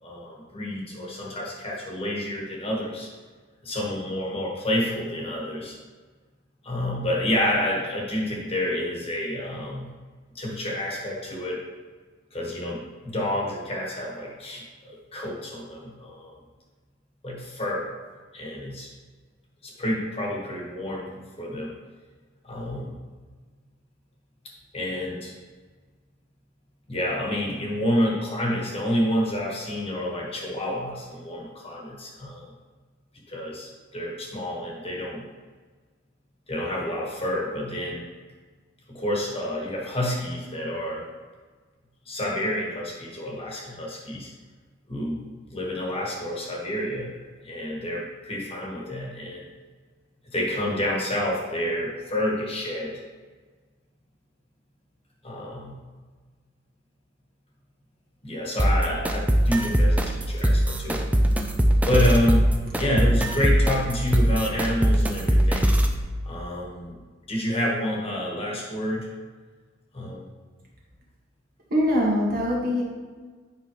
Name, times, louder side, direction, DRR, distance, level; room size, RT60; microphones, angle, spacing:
voice 1, 0.0-3.1 3.6-5.8 6.6-9.9 10.3-11.6 12.3-16.3 17.2-17.9 18.3-18.9 19.6-21.7 22.4-23.0 24.7-25.3 26.9-32.5 33.3-35.2 36.5-38.0 38.9-41.1 42.1-44.3 44.9-45.3 45.5-47.1 47.4-49.5 50.3-52.9 55.2-55.7 58.2-61.1 61.9-62.5 62.8-65.7 66.2-67.0 67.3-69.1 69.9-70.3, left 1 dB, 30° left, -3 dB, 1.4 m, -29 dB
sound 1, 58.6-66.0, equal, 10° right, 0.4 m, -21 dB
voice 2, 71.7-72.8, equal, 50° right, -4 dB, 1.8 m, -23 dB
8.7 x 5.6 x 3.1 m, 1.4 s
head